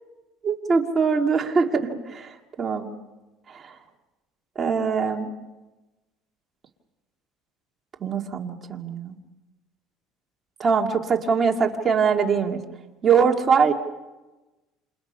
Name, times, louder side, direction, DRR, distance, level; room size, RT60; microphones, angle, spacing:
voice 1, 0.4-2.3 2.6-2.9 3.5-3.6 4.6-5.3 8.0-9.1 10.6-12.6 13.0-13.7, right 6 dB, 25° right, 1 dB, 2.2 m, -22 dB
29.0 x 28.5 x 5.6 m, 1.1 s
cardioid pair, 145°, 0 cm